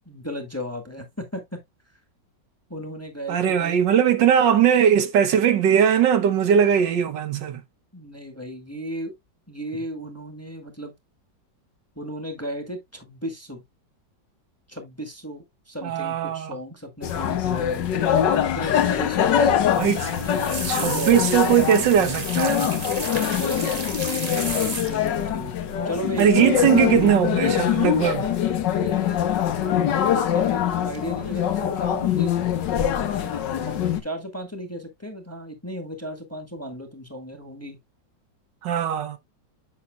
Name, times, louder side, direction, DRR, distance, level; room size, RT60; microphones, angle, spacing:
voice 1, 0.0-1.6 2.7-3.8 7.9-9.1 9.5-10.9 11.9-13.6 14.7-18.1 18.5-19.5 20.7-21.2 23.0-25.5 25.8-26.6 28.7-29.2 29.5-32.7 33.2-37.8, equal, 10° left, 1.4 m, -35 dB
voice 2, 3.3-7.6 15.8-16.5 19.8-20.1 20.7-22.7 26.2-28.3 38.6-39.2, right 8 dB, 75° right, 1.6 m, -20 dB
sound 1, 17.0-34.0, left 9 dB, 70° left, 1.6 m, -23 dB
sound 2, 19.6-25.2 26.2-26.5 26.7-27.1 28.2-28.8 29.1-29.7 30.2-30.5 30.9-31.0, right 3 dB, 25° right, 1.2 m, -33 dB
8.5 x 5.8 x 2.3 m
omnidirectional pair, 2.0 m